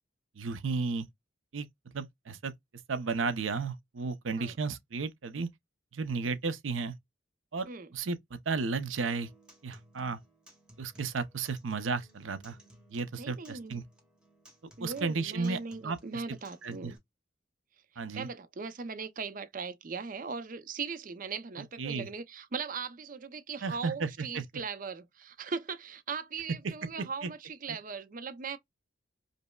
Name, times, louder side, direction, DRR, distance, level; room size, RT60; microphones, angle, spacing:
voice 1, 0.4-1.1 1.5-1.7 1.9-2.5 2.9-5.5 5.9-6.9 7.5-9.3 9.6-10.2 10.8-12.6 12.9-13.8 14.6-16.2 16.6-16.9 18.0-18.3 21.6-22.1 23.6-24.4 26.6-27.3, right 4 dB, 85° right, 0.6 m, -34 dB
Acoustic guitar, 9.0-17.0, right 1 dB, 5° right, 1.0 m, -58 dB
voice 2, 13.2-13.8 14.8-17.0 18.1-28.6, right 5 dB, 45° right, 0.5 m, -39 dB
5.2 x 2.0 x 2.2 m
head